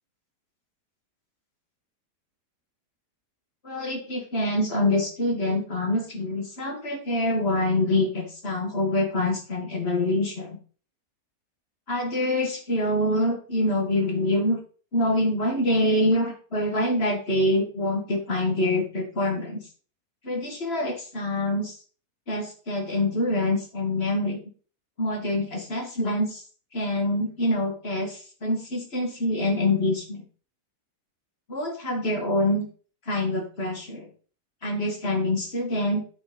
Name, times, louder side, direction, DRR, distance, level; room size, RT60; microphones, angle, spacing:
voice 1, 3.6-10.6 11.9-14.6 14.9-19.6 20.2-21.8 22.3-24.4 25.0-26.4 26.7-30.2 31.5-32.7 33.1-34.1 34.6-36.0, left 1 dB, 35° left, 2 dB, 2.4 m, -25 dB
12.0 x 5.0 x 5.3 m, 0.40 s
omnidirectional pair, 1.8 m